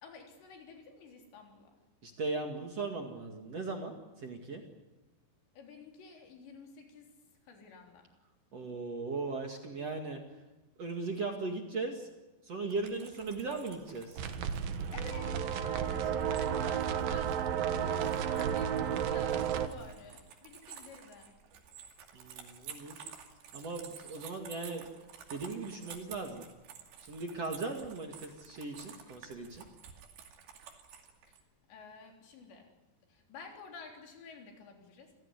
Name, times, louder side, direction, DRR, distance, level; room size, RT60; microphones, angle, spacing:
voice 1, 0.0-1.8 5.5-7.1 7.4-8.1 14.9-21.3 31.3-31.4 31.7-32.7 33.1-35.1, left 4 dB, 85° left, 2 dB, 5.9 m, -51 dB
voice 2, 2.0-4.6 8.5-10.2 10.8-12.1 12.5-14.2 22.1-23.1 23.5-24.9 25.3-26.5 27.0-29.6, right 3 dB, 45° right, 3 dB, 2.6 m, -38 dB
sound 1, 12.7-31.4, right 7 dB, 80° right, 4.7 m, -52 dB
sound 2, 14.2-19.7, right 8 dB, 65° right, 2.9 m, -32 dB
28.0 x 16.5 x 9.7 m, 1.1 s
omnidirectional pair, 4.9 m